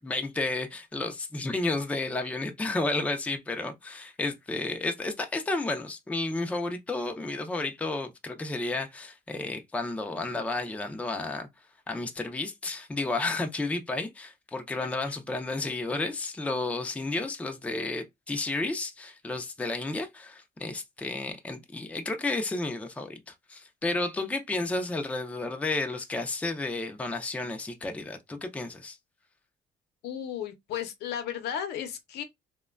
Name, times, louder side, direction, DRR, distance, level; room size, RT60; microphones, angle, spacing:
voice 1, 0.0-11.5 11.9-29.0, left 2 dB, 10° left, 0.4 m, -32 dB
voice 2, 30.0-32.2, left 9 dB, 75° left, 0.6 m, -34 dB
2.9 x 2.2 x 2.3 m
cardioid pair, 110°, 17 cm